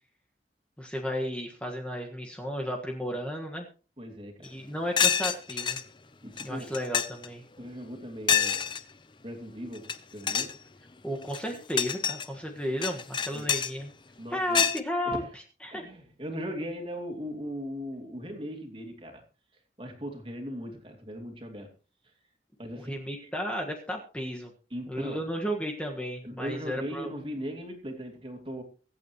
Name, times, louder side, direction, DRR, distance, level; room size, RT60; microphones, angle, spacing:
voice 1, 0.8-3.7 4.4-5.8 6.4-7.4 11.0-13.9 14.3-15.2 15.6-15.9 22.8-24.5 24.9-27.1, equal, 5° left, 1.5 m, -33 dB
voice 2, 4.0-4.5 6.2-6.7 7.6-8.7 9.2-10.5 13.3-13.5 14.2-14.6 15.1-15.3 15.7-19.2 19.8-21.7 22.6-22.9 23.2-23.3 24.7-25.2 26.2-28.6, equal, 30° right, 2.7 m, -38 dB
sound 1, 4.5-4.6 5.0-5.8 6.4-6.5 6.7-7.3 8.3-8.8 9.8-10.0 10.2-10.6 11.2-12.3 12.8-13.7 14.5-14.8, left 7 dB, 25° left, 0.7 m, -26 dB
23.5 x 8.5 x 3.0 m
head